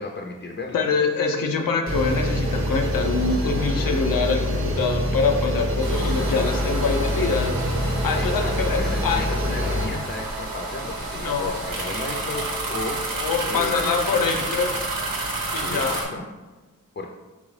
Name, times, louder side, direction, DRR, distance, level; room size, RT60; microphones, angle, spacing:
voice 1, 0.0-0.8 8.2-14.4 15.5-16.2 17.0-17.1, left 2 dB, 35° left, 1 dB, 0.5 m, -34 dB
voice 2, 0.7-9.3 11.1-11.6 13.1-14.7 15.5-16.1, left 4 dB, 90° left, 3 dB, 0.6 m, -25 dB
sound 1, 1.9-9.9, left 1 dB, 40° right, 0.6 m, -25 dB
sound 2, 5.8-16.0, right 2 dB, 90° right, 0.8 m, -30 dB
Wind instrument woodwind instrument, 6.2-12.7, equal, ahead, 0.7 m, -42 dB
3.9 x 3.4 x 3.2 m, 1.2 s
cardioid pair, 50°, 33 cm